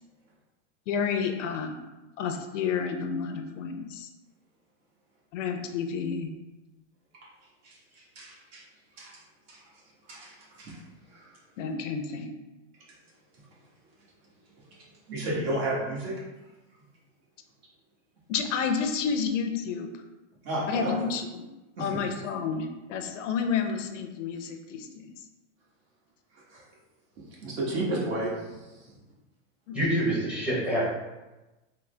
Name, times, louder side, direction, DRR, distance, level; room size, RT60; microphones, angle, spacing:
voice 1, 0.9-1.7 2.2-4.1 5.3-6.3 11.6-12.3 18.3-19.9 20.7-21.2 21.8-25.1 29.7-29.8, left 6 dB, 80° left, 5 dB, 0.6 m, -30 dB
voice 2, 7.6-8.6 9.0-9.2 9.5-9.6 10.1-10.8 11.1-11.3 15.1-16.2 20.4-21.1 21.8-22.0 26.5-26.6 27.2-28.9, right 1 dB, 55° right, -4 dB, 1.2 m, -33 dB
voice 3, 29.7-30.9, right 1 dB, 5° right, -8 dB, 0.8 m, -26 dB
3.7 x 2.0 x 3.2 m, 1.1 s
supercardioid pair, 150°, 37 cm